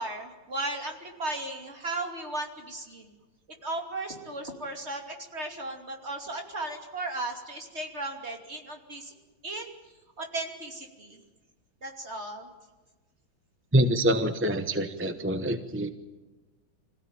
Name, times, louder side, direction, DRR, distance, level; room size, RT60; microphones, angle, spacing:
voice 1, 0.0-3.1 3.6-9.1 9.4-9.7 10.2-11.2 11.8-12.5, right 2 dB, 35° right, 3 dB, 3.1 m, -36 dB
voice 2, 13.7-15.9, right 1 dB, 10° right, 8 dB, 0.6 m, -25 dB
25.5 x 16.5 x 9.1 m, 1.2 s
omnidirectional pair, 2.1 m